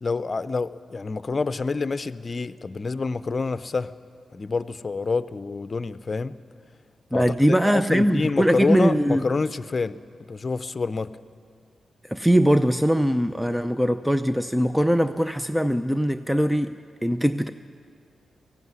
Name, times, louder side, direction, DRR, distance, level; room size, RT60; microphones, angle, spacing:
voice 1, 0.0-3.9 4.3-6.4 7.1-7.3 7.7-10.0 10.3-11.1, left 4 dB, 40° left, 13 dB, 0.7 m, -27 dB
voice 2, 7.1-9.3 12.1-17.5, equal, 5° right, 10 dB, 0.6 m, -21 dB
17.5 x 15.5 x 9.6 m, 2.2 s
cardioid pair, 65°, 0 cm